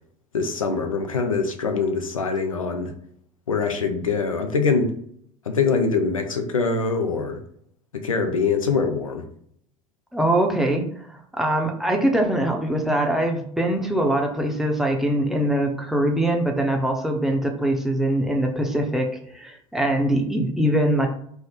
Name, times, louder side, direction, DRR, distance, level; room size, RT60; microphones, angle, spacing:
voice 1, 0.3-2.9 3.5-4.9 5.5-7.4 7.9-9.3, left 4 dB, 85° left, 5 dB, 0.4 m, -23 dB
voice 2, 10.1-10.9 11.3-19.1 19.3-21.1, right 1 dB, ahead, 1 dB, 0.5 m, -22 dB
3.3 x 2.0 x 3.4 m, 0.65 s
figure-of-eight pair, 70°, 17 cm